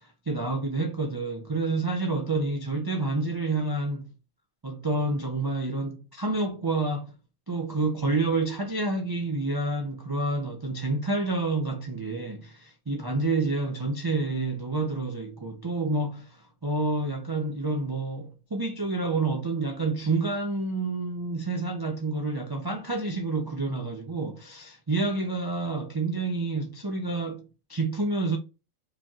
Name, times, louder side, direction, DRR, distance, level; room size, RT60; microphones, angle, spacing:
voice 1, 0.0-4.1 4.6-7.1 7.5-28.4, right 3 dB, 35° right, 0.3 m, -29 dB
4.9 x 2.9 x 2.3 m
omnidirectional pair, 1.4 m